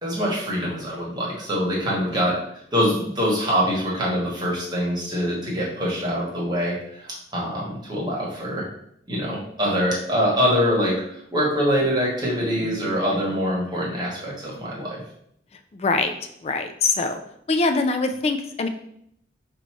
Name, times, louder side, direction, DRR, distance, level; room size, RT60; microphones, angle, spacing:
voice 1, 0.0-8.7 9.1-15.0, equal, 20° right, -4 dB, 1.2 m, -24 dB
voice 2, 15.7-16.2 16.4-17.2 17.5-18.7, left 3 dB, 30° left, 7 dB, 0.3 m, -24 dB
4.4 x 2.7 x 4.5 m, 0.72 s
head